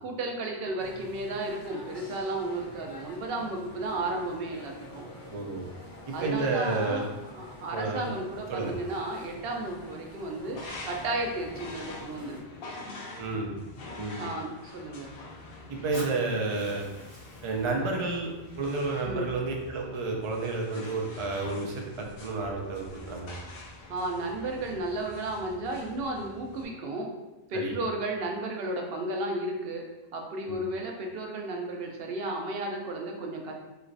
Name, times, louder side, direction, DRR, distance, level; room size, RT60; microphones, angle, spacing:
voice 1, 0.0-5.0 6.1-7.0 7.3-12.4 14.2-15.1 19.0-19.3 23.9-27.1 27.5-29.8 30.1-33.5, right 2 dB, 75° right, 1 dB, 0.8 m, -33 dB
sound 1, 0.8-12.4, left 1 dB, 30° left, 0.4 m, -47 dB
voice 2, 5.3-5.7 6.1-7.1 7.7-8.1 8.5-8.7 13.2-13.5 14.0-14.2 15.7-16.9 17.4-18.3 18.6-23.4 27.5-27.7 30.5-30.6, right 3 dB, 40° right, 0 dB, 0.4 m, -30 dB
sound 2, 10.4-26.6, left 2 dB, 70° left, 0.8 m, -45 dB
Fire, 15.9-19.9, equal, 45° left, 1.7 m, -49 dB
3.2 x 3.0 x 2.5 m, 1.1 s
omnidirectional pair, 1.0 m